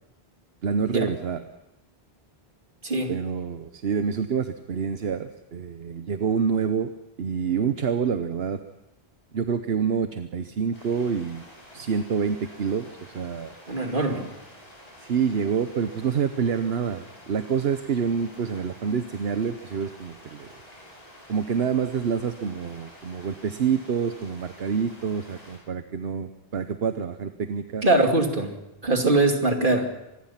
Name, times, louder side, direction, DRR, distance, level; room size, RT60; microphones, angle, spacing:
voice 1, 0.6-1.4 3.1-6.9 7.2-8.6 9.3-11.4 11.7-13.5 15.1-20.5 21.3-27.9, right 6 dB, 75° right, 9 dB, 1.2 m, -27 dB
sound 1, 10.7-25.6, equal, 40° left, 7.5 m, -49 dB
voice 2, 13.7-14.3 27.8-28.5 28.8-29.9, right 2 dB, 55° right, 3 dB, 2.8 m, -22 dB
25.5 x 20.5 x 5.8 m, 0.93 s
omnidirectional pair, 1.0 m